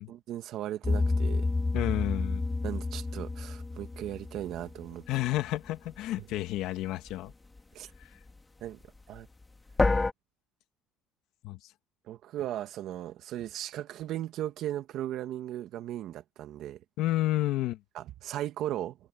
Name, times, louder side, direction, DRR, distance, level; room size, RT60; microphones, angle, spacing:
voice 1, 0.1-1.5 2.6-5.0 7.7-7.9 8.6-8.8 9.1-9.3 12.1-16.8 18.0-19.0, right 12 dB, 55° right, 2.0 m, -37 dB
sound 1, 0.8-5.0 9.8-10.1, left 3 dB, 15° left, 2.8 m, -29 dB
voice 2, 1.7-2.4 5.1-7.3 11.4-11.6 17.0-17.8, left 15 dB, 65° left, 1.9 m, -30 dB
cardioid pair, 130°, 0 cm